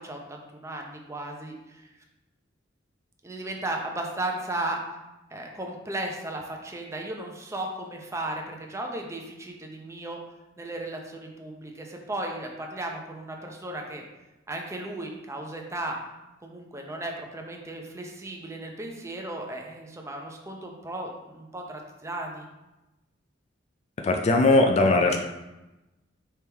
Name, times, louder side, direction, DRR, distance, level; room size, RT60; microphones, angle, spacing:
voice 1, 0.0-1.9 3.2-4.8 5.3-10.2 10.6-14.0 14.5-16.0 16.4-22.5, right 1 dB, 15° right, 1 dB, 0.6 m, -35 dB
voice 2, 24.0-25.2, left 2 dB, 35° left, 3 dB, 0.3 m, -20 dB
4.4 x 3.5 x 3.4 m, 1.0 s
head